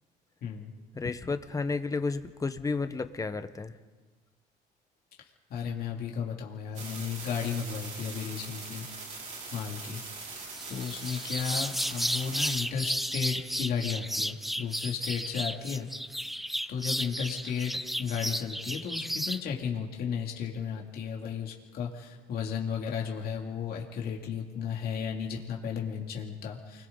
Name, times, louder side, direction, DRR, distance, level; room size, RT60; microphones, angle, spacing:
voice 1, 0.4-0.7 5.2-8.8 9.5-10.0 10.7-16.3 16.7-17.7 18.0-26.9, left 7 dB, 65° left, 0 dB, 2.8 m, -34 dB
voice 2, 0.9-3.7, left 4 dB, 20° left, 10 dB, 1.2 m, -32 dB
sound 1, 6.7-12.6, right 4 dB, 45° right, 4.4 m, -42 dB
sound 2, 10.5-19.4, equal, ahead, 0.6 m, -33 dB
29.0 x 22.5 x 4.0 m, 1.4 s
cardioid pair, 110°, 17 cm